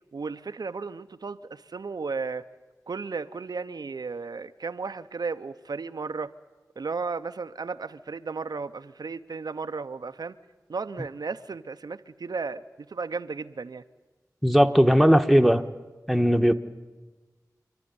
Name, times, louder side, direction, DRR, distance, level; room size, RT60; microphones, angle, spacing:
voice 1, 0.1-2.4 2.9-6.3 6.8-10.3 10.7-13.8 16.5-16.6, right 4 dB, 80° right, 10 dB, 0.6 m, -34 dB
voice 2, 14.4-15.6 16.1-16.5, equal, ahead, 6 dB, 1.1 m, -18 dB
26.5 x 11.5 x 9.5 m, 1.2 s
wide cardioid pair, 50°, 7 cm